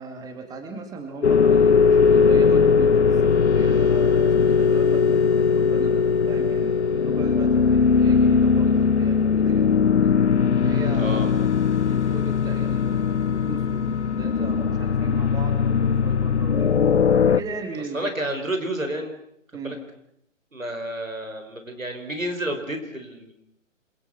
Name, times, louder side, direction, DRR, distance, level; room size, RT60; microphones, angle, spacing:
voice 1, 0.0-3.2 3.5-9.7 10.5-11.4 11.7-16.8 17.3-18.1 19.5-19.8, right 3 dB, 10° right, 6 dB, 2.5 m, -37 dB
sound 1, 1.2-17.4, left 6 dB, 60° left, 1.2 m, -19 dB
voice 2, 11.0-11.3 17.9-19.2 19.6-19.8 20.5-23.3, right 1 dB, 90° right, 6 dB, 5.6 m, -30 dB
27.0 x 23.0 x 6.1 m, 0.75 s
figure-of-eight pair, 135°, 38 cm